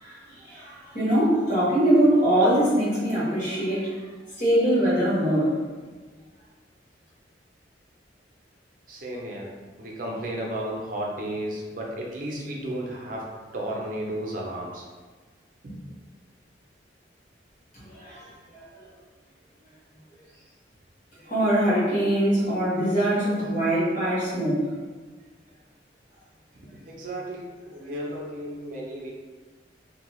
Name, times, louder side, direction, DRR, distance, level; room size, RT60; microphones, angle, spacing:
voice 1, 0.0-3.9 4.4-5.6 17.9-18.8 21.3-24.7, right 1 dB, 45° left, -9 dB, 1.3 m, -23 dB
voice 2, 8.9-14.8 15.6-15.8 26.5-29.1, right 1 dB, 45° right, -2 dB, 0.5 m, -34 dB
2.6 x 2.3 x 2.9 m, 1.4 s
head